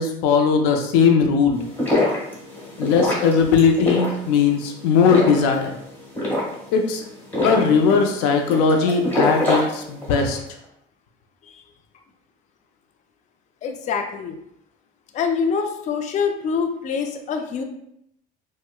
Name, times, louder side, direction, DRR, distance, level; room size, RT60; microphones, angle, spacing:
voice 1, 0.0-1.6 2.8-5.7 6.7-7.0 7.4-10.4, left 5 dB, 85° left, 4 dB, 0.5 m, -18 dB
sound 1, 1.5-10.4, left 2 dB, 10° left, 1.5 m, -25 dB
voice 2, 13.6-14.4 15.1-17.6, left 6 dB, 40° left, 5 dB, 0.4 m, -25 dB
4.6 x 2.1 x 2.2 m, 0.75 s
supercardioid pair, 100°, 20 cm